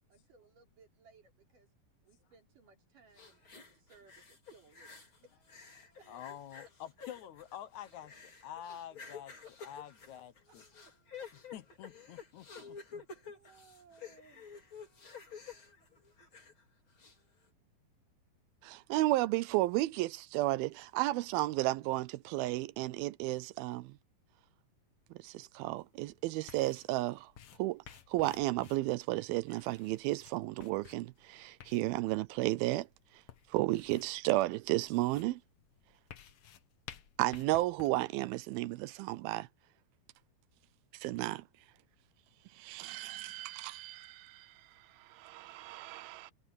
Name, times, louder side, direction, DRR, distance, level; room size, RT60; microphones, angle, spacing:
voice 1, 0.1-1.7 2.0-5.0 5.2-5.4 6.0-6.3 9.4-9.5 10.1-10.2 10.5-10.6 11.2-11.3 12.7-12.8 13.2-14.5, right 5 dB, 60° right, 5.7 m, -63 dB
sound 1, 3.2-5.2 5.5-16.6 17.0-17.1, left 5 dB, 35° left, 4.8 m, -51 dB
voice 2, 6.1-8.1 8.4-9.3 9.6-10.6 11.5-13.0, left 11 dB, 70° left, 2.0 m, -47 dB
voice 3, 18.6-24.0 25.1-27.3 27.6-32.9 33.1-33.2 33.5-35.4 37.2-39.5 40.9-41.5 42.5-46.3, right 18 dB, 90° right, 2.5 m, -33 dB
sound 2, 25.6-37.9, left 9 dB, 90° left, 1.1 m, -56 dB
omnidirectional pair, 4.2 m